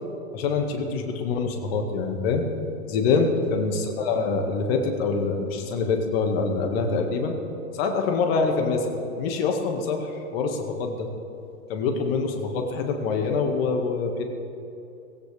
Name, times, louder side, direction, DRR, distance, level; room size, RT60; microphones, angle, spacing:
voice 1, 0.3-2.4 2.9-7.4 7.7-8.9 9.2-11.1 11.7-14.2, left 4 dB, 40° left, 4 dB, 2.0 m, -25 dB
16.5 x 16.0 x 3.5 m, 2.7 s
hypercardioid pair, 130°, 44 cm